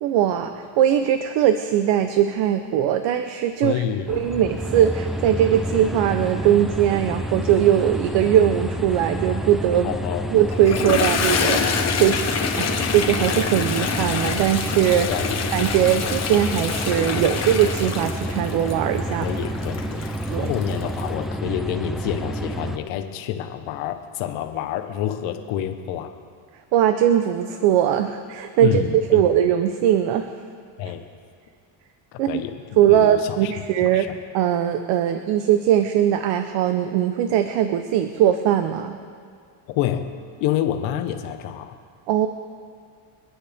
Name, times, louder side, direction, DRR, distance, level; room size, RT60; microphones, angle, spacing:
voice 1, 0.0-3.8 4.1-9.9 10.3-12.2 12.6-15.1 15.5-19.3 20.3-20.5 26.7-30.3 32.2-32.4 32.8-34.1 34.3-39.0 42.1-42.3, right 10 dB, 70° right, 8 dB, 0.9 m, -20 dB
voice 2, 3.6-4.3 9.8-10.3 15.0-15.4 16.0-16.2 19.1-20.0 20.4-26.1 28.6-29.3 30.8-31.1 32.1-32.6 32.9-33.5 33.8-34.1 39.7-40.1 40.4-41.8, left 10 dB, 85° left, 7 dB, 1.4 m, -28 dB
sound 1, 4.1-22.8, equal, ahead, 0.4 m, -29 dB
Toilet flush, 10.5-21.1, left 6 dB, 35° left, 1.3 m, -26 dB
29.0 x 9.6 x 3.6 m, 2.2 s
cardioid pair, 135°, 45 cm